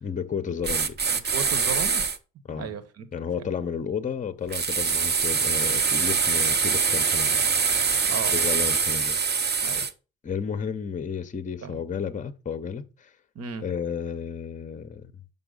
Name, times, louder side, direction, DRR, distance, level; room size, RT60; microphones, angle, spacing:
voice 1, 0.0-1.0 2.5-2.7 3.1-7.4 8.3-9.7 10.2-13.1 13.6-15.1, left 7 dB, 25° left, 0.7 m, -32 dB
sound 1, 0.6-2.2 4.5-9.9, right 5 dB, 35° right, 0.7 m, -24 dB
voice 2, 1.1-2.1 2.6-3.1 8.1-8.4 9.6-9.9 11.6-11.8 13.3-13.7, right 6 dB, 55° right, 1.1 m, -35 dB
6.0 x 5.4 x 3.8 m
cardioid pair, 90°, 30 cm